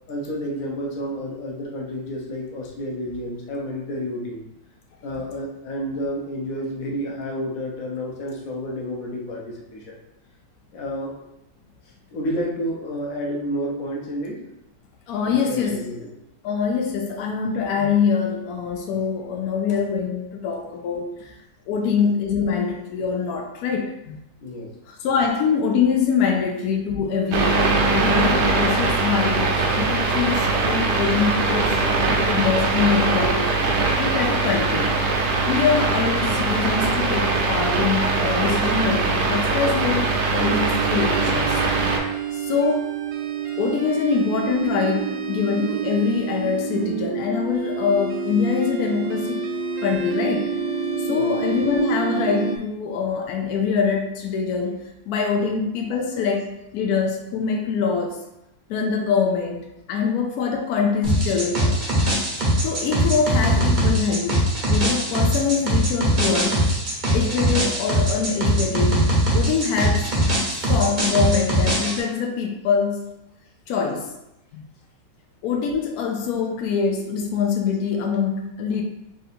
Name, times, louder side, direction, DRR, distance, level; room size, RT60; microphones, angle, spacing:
voice 1, 0.1-4.4 5.0-10.0 10.7-11.1 12.1-14.4 15.2-16.1 19.8-19.9 24.4-24.7 51.2-51.4 66.9-67.0, equal, 55° left, -2 dB, 1.1 m, -30 dB
voice 2, 15.1-15.8 16.4-21.3 21.7-24.2 24.9-31.7 32.2-33.6 34.0-34.9 35.5-41.6 42.3-42.9 43.6-49.4 49.8-50.5 51.0-54.8 55.1-56.5 56.7-58.2 58.7-61.7 62.6-66.6 67.1-69.1 69.3-70.3 70.6-73.1 73.7-74.1 74.5-74.6 75.4-78.8, left 6 dB, 85° left, 2 dB, 0.8 m, -24 dB
sound 1, 27.3-42.0, right 3 dB, 70° right, 1.2 m, -21 dB
sound 2, 40.4-52.6, right 6 dB, 85° right, 1.4 m, -28 dB
sound 3, 61.0-72.0, equal, 40° right, 0.7 m, -21 dB
3.7 x 2.6 x 4.2 m, 0.86 s
omnidirectional pair, 2.1 m